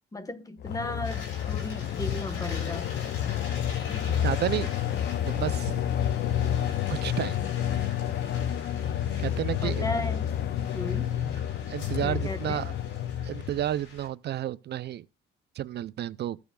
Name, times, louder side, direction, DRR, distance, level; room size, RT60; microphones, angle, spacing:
voice 1, 0.1-2.9 3.7-4.1 9.1-9.2 9.6-10.3 10.7-11.2 12.0-12.7, left 1 dB, 15° left, 1.2 m, -36 dB
sound 1, 0.6-13.7, left 10 dB, 60° left, 0.4 m, -29 dB
sound 2, 1.0-14.1, left 3 dB, 90° left, 4.2 m, -45 dB
voice 2, 4.2-4.7 5.2-5.8 6.9-7.4 9.2-9.9 11.7-12.8 13.2-15.0 15.5-16.4, right 12 dB, 60° right, 0.4 m, -31 dB
15.0 x 7.0 x 2.3 m
cardioid pair, 90°, 20 cm